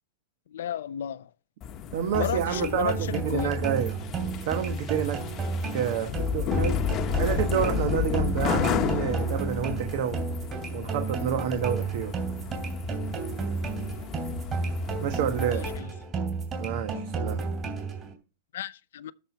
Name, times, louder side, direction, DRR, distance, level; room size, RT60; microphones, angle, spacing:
voice 1, 0.5-1.3 2.1-3.5 15.8-15.9 16.9-17.0 18.5-19.1, left 10 dB, 85° left, 0.6 m, -33 dB
sound 1, 1.6-15.8, left 8 dB, 30° left, 1.0 m, -33 dB
voice 2, 1.9-3.9 4.5-5.3 5.7-6.9 7.2-10.2 10.7-12.2 15.0-15.7 16.6-17.4, right 8 dB, 60° right, 1.1 m, -29 dB
sound 2, 2.1-18.1, right 4 dB, 25° right, 2.9 m, -32 dB
13.0 x 4.4 x 5.8 m
supercardioid pair, 150°, 0 cm